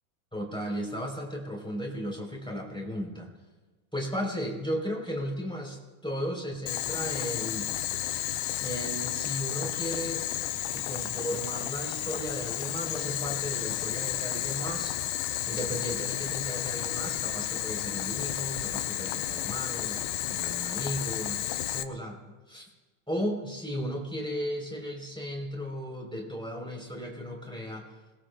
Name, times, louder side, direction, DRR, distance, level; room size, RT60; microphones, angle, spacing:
voice 1, 0.3-3.3 3.9-7.7 8.6-10.2 10.7-15.0 15.5-20.0 20.3-21.5 21.7-22.2 22.5-22.6 23.1-27.9, equal, ahead, -1 dB, 2.4 m, -35 dB
Boiling, 6.7-21.8, left 13 dB, 80° left, 2.6 m, -32 dB
29.0 x 20.5 x 2.2 m, 1.3 s
omnidirectional pair, 4.9 m